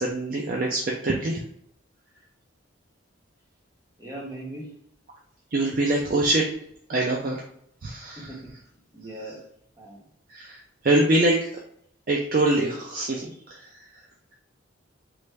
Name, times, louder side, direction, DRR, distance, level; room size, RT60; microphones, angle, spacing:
voice 1, 0.0-1.4 5.5-6.5 6.9-7.4 7.8-8.3 10.3-10.6 10.8-11.5 12.1-13.7, right 2 dB, 45° right, -2 dB, 0.4 m, -24 dB
voice 2, 4.0-4.7 8.2-8.6 8.9-9.5 9.8-10.0, right 1 dB, 15° right, -2 dB, 0.8 m, -39 dB
3.2 x 2.5 x 3.1 m, 0.70 s
head